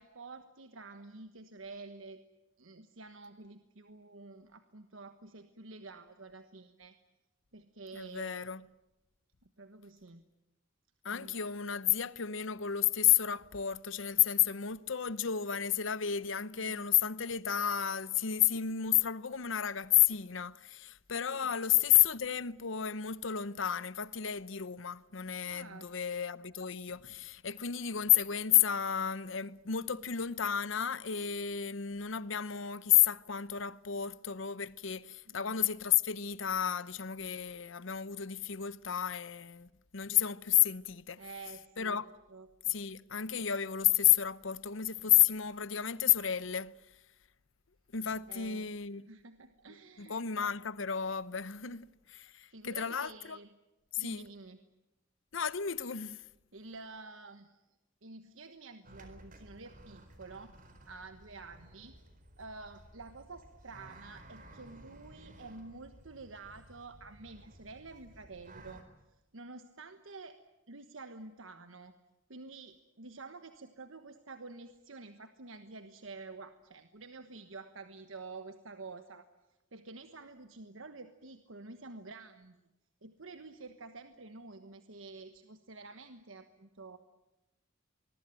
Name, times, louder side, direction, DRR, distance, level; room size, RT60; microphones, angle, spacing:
voice 1, 0.0-2.2 2.6-7.0 7.5-8.5 9.4-10.2 11.1-11.3 16.5-16.8 21.3-21.5 25.5-25.9 35.3-35.6 41.2-42.0 42.3-42.7 48.3-48.7 49.1-50.3 51.6-51.8 52.2-53.5 54.0-54.6 56.5-57.7 58.0-60.6 60.9-62.0 62.4-68.9 69.3-70.4 70.7-71.9 72.3-79.3 79.7-82.6 83.0-87.0, right 3 dB, 85° right, 1.3 m, -49 dB
voice 2, 7.9-8.6 11.0-41.2 41.8-42.1 42.7-46.8 47.9-49.1 50.0-53.4 53.9-54.2 55.3-56.2, left 11 dB, 80° left, 0.9 m, -31 dB
sound 1, 58.8-68.8, right 1 dB, 45° right, 4.1 m, -55 dB
25.0 x 22.0 x 9.0 m
head